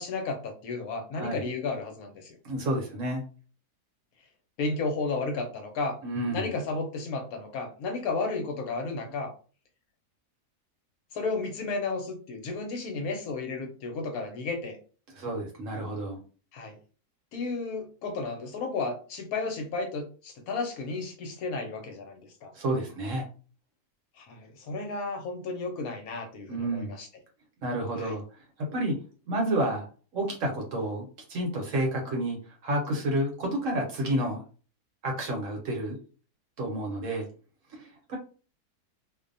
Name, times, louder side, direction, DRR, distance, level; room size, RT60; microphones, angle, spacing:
voice 1, 0.0-2.4 4.6-6.0 6.3-9.3 11.1-14.8 16.5-16.8 17.3-22.5 24.2-27.1 28.0-28.1, left 3 dB, 75° left, 4 dB, 1.0 m, -33 dB
voice 2, 1.1-1.4 2.4-3.2 6.0-6.5 15.1-16.2 22.5-23.3 26.5-26.9 27.6-28.2 28.7-28.9 29.3-29.9 30.1-34.4 35.0-36.0 36.6-37.3 37.7-38.2, right 1 dB, 60° right, 0 dB, 1.0 m, -30 dB
2.6 x 2.1 x 2.5 m, 0.38 s
omnidirectional pair, 1.7 m